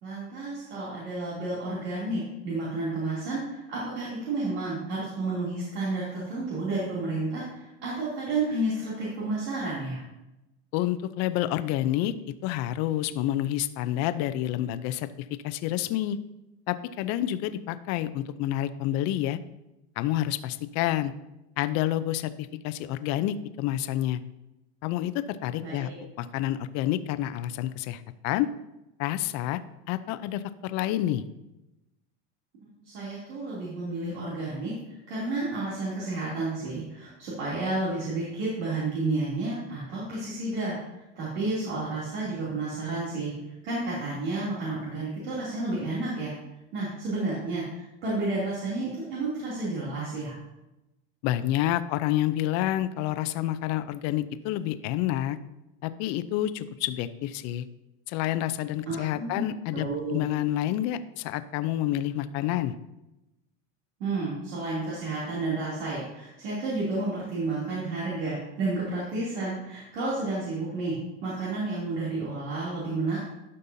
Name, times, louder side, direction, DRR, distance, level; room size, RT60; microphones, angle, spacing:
voice 1, 0.0-7.4 7.8-10.0 25.6-26.1 32.8-34.7 35.1-40.7 41.2-43.3 43.6-46.3 46.7-47.6 48.0-50.4 58.9-59.4 59.7-60.2 64.0-71.0 71.2-73.2, right 2 dB, 85° right, -8 dB, 2.9 m, -31 dB
voice 2, 10.7-12.1 12.4-15.1 15.4-16.2 16.7-19.4 20.0-21.1 21.6-22.3 22.6-24.2 24.8-25.9 26.2-28.5 29.0-29.6 29.9-31.2 51.2-55.4 55.8-57.7 58.1-62.7, left 13 dB, 50° left, 13 dB, 0.5 m, -28 dB
12.0 x 5.5 x 2.7 m, 0.95 s
supercardioid pair, 135°, 34 cm